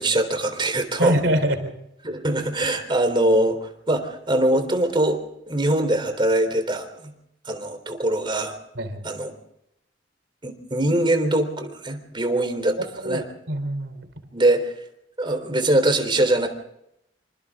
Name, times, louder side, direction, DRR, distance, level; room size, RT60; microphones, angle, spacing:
voice 1, 0.0-1.2 2.0-5.2 5.5-7.1 7.5-8.6 9.0-9.3 10.4-12.8 13.0-13.2 14.3-14.7 15.2-16.5, right 1 dB, 25° right, 7 dB, 3.6 m, -22 dB
voice 2, 1.0-1.7 8.8-9.1 13.0-14.1, right 1 dB, 70° right, 9 dB, 3.8 m, -24 dB
27.0 x 26.0 x 3.7 m, 0.81 s
head